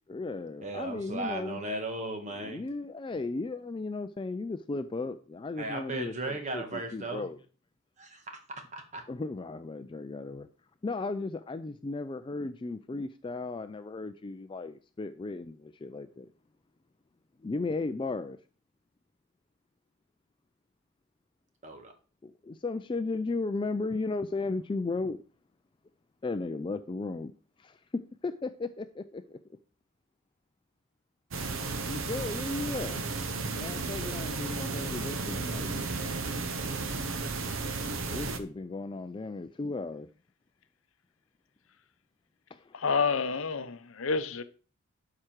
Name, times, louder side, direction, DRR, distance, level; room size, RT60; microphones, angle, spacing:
voice 1, 0.1-1.6 2.4-7.4 9.1-10.5 10.8-16.3 17.4-18.4 22.2-25.2 26.2-27.3 27.6-27.8 28.2-29.4 31.9-33.0 33.6-35.7 38.1-40.1 42.5-42.8, left 3 dB, 25° left, 0.3 m, -35 dB
voice 2, 0.6-2.6 5.6-7.3 8.0-9.0 21.6-21.9, right 2 dB, 35° right, 1.7 m, -36 dB
sound 1, 31.3-38.4, right 3 dB, 65° right, 1.0 m, -33 dB
voice 3, 42.7-44.4, left 5 dB, 65° left, 0.7 m, -29 dB
12.0 x 4.9 x 4.6 m
head